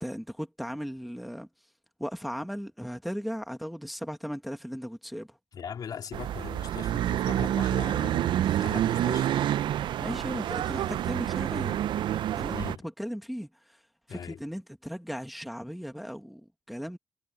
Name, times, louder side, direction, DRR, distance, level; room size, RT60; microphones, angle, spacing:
voice 1, 0.0-1.5 2.0-5.4 10.0-11.8 12.3-13.8 14.1-17.0, equal, ahead, 1.4 m, -37 dB
voice 2, 5.5-9.6 12.5-12.9 14.1-14.4, left 7 dB, 55° left, 3.8 m, -40 dB
sound 1, 6.1-12.8, right 11 dB, 80° right, 0.5 m, -28 dB
cardioid pair, 135°, 8 cm